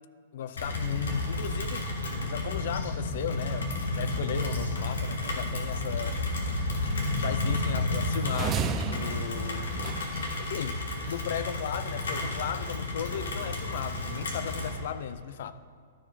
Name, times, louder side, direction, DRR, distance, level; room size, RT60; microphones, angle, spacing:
voice 1, 0.3-2.0 2.2-6.2 7.2-9.8 10.4-15.5, left 9 dB, 65° left, 13 dB, 0.5 m, -36 dB
Rain, 0.6-14.8, left 2 dB, 80° left, 1.7 m, -31 dB
sound 1, 8.3-10.6, right 7 dB, 25° right, 0.5 m, -34 dB
12.5 x 5.1 x 5.4 m, 2.1 s
hypercardioid pair, 125°, 0 cm